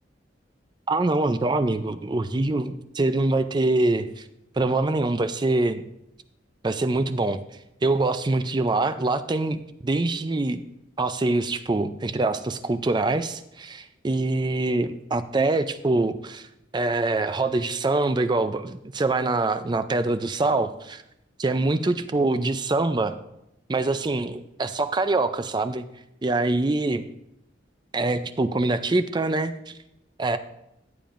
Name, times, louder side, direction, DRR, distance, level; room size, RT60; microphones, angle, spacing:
voice 1, 0.9-4.3 4.6-5.8 6.6-7.4 7.8-10.6 11.0-16.5 16.7-21.0 21.4-23.1 23.7-25.8 26.2-27.1 27.9-29.8 30.2-30.4, right 2 dB, 25° right, 11 dB, 0.4 m, -24 dB
14.5 x 8.7 x 2.5 m, 0.82 s
head